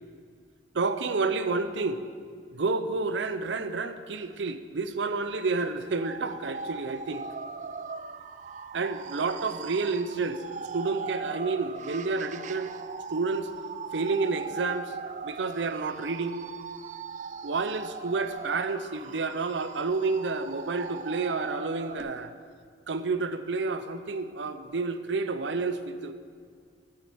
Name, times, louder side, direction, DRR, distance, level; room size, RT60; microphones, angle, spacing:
voice 1, 0.7-2.0 2.5-7.2 8.7-10.4 10.7-12.7 13.1-13.5 13.9-14.9 15.2-16.4 17.4-22.3 22.9-26.2, right 3 dB, 85° right, 11 dB, 0.6 m, -30 dB
sound 1, 5.9-22.0, right 5 dB, 45° right, 0.3 m, -39 dB
9.2 x 6.7 x 6.9 m, 2.1 s
head